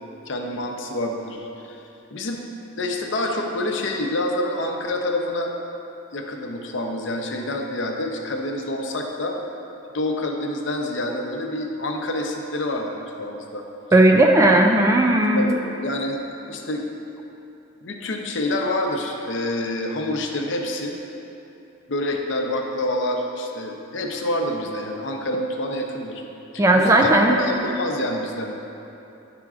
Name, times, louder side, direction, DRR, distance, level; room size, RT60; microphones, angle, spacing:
voice 1, 0.3-1.8 2.1-2.4 2.7-5.5 6.1-9.4 9.9-13.7 15.4-16.2 16.5-16.9 17.8-21.0 21.9-26.2 26.5-28.5, left 1 dB, 65° left, 2 dB, 0.6 m, -27 dB
voice 2, 13.9-15.4 26.6-27.4, right 1 dB, 15° right, 2 dB, 0.3 m, -16 dB
10.5 x 5.8 x 2.4 m, 2.9 s
head